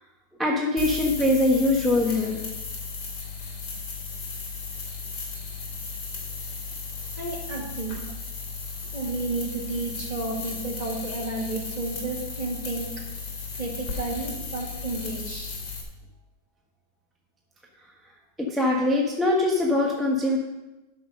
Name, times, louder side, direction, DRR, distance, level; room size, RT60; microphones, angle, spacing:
voice 1, 0.4-2.4 18.4-20.4, left 2 dB, ahead, -2 dB, 0.8 m, -22 dB
sound 1, 0.8-15.8, left 4 dB, 80° left, 3.5 m, -35 dB
voice 2, 7.2-8.0 8.9-12.9 13.6-15.7, right 2 dB, 20° right, -3 dB, 2.3 m, -32 dB
11.0 x 5.9 x 6.6 m, 1.0 s
omnidirectional pair, 2.1 m